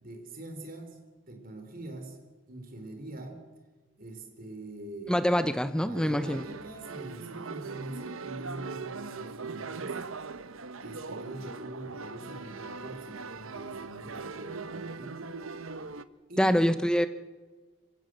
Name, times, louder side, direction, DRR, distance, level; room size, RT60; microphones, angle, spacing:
voice 1, 0.0-1.0 1.3-2.2 2.5-3.4 4.0-5.2 5.7-10.0 10.8-15.2 16.3-16.6, right 2 dB, 45° right, 5 dB, 4.3 m, -43 dB
voice 2, 5.1-6.5 16.4-17.1, equal, 5° left, 11 dB, 0.7 m, -25 dB
sound 1, 5.9-16.0, right 4 dB, 75° right, 1.0 m, -40 dB
26.5 x 16.0 x 8.0 m, 1.3 s
head